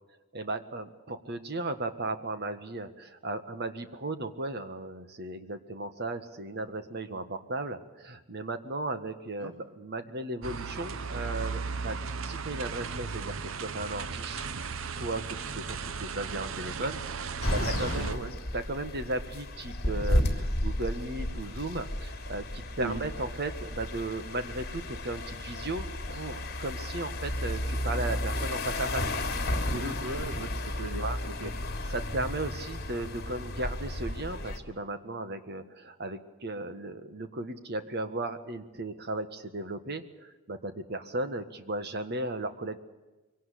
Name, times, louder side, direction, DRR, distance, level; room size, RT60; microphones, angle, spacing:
voice 1, 0.3-14.4 14.8-18.1 18.5-29.1 31.0-31.2 31.4-31.5 31.9-42.8, right 2 dB, 45° right, 9 dB, 1.7 m, -36 dB
sound 1, 10.4-18.1, right 5 dB, 60° right, 0.8 m, -36 dB
sound 2, 17.4-34.6, left 1 dB, 45° left, 3.2 m, -33 dB
voice 2, 17.6-18.3 22.8-23.0 29.7-31.5, right 2 dB, 90° right, 4 dB, 1.9 m, -38 dB
23.5 x 17.5 x 8.5 m, 1.1 s
head